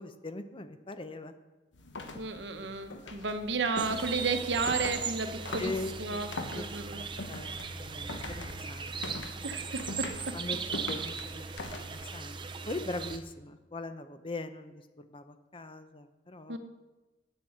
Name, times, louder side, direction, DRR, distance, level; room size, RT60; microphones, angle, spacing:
voice 1, 0.0-1.3 5.6-6.2 6.5-9.0 10.3-10.6 10.9-12.4 12.7-16.6, left 2 dB, 30° left, 9 dB, 0.7 m, -41 dB
sound 1, 1.7-12.3, left 2 dB, 80° left, 1.2 m, -43 dB
voice 2, 2.1-5.7 6.0-7.0 9.4-10.4 16.5-16.6, right 4 dB, 70° right, 7 dB, 1.0 m, -33 dB
sound 2, 3.8-13.2, right 5 dB, 25° right, 0.6 m, -38 dB
9.0 x 7.5 x 6.6 m, 1.2 s
head